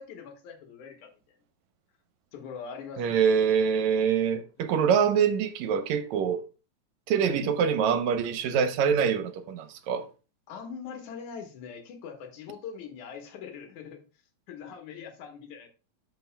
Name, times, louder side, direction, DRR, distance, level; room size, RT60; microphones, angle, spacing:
voice 1, 0.0-1.4 2.3-3.4 7.2-7.4 10.5-14.0 14.5-15.7, left 6 dB, 85° left, 2.7 m, -42 dB
voice 2, 3.0-6.4 7.1-10.1, right 7 dB, 75° right, 2.0 m, -25 dB
13.5 x 5.4 x 2.2 m
omnidirectional pair, 3.3 m